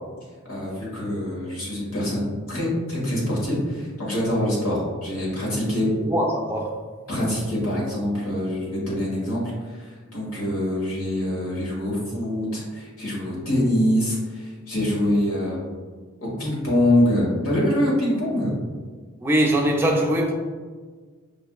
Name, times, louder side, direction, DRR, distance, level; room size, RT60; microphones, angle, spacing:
voice 1, 0.5-5.9 7.1-15.6 16.2-18.6, left 1 dB, 85° left, -5 dB, 1.4 m, -24 dB
voice 2, 6.0-6.8 19.2-20.3, right 1 dB, 10° right, -1 dB, 0.3 m, -22 dB
5.3 x 2.5 x 2.3 m, 1.5 s
head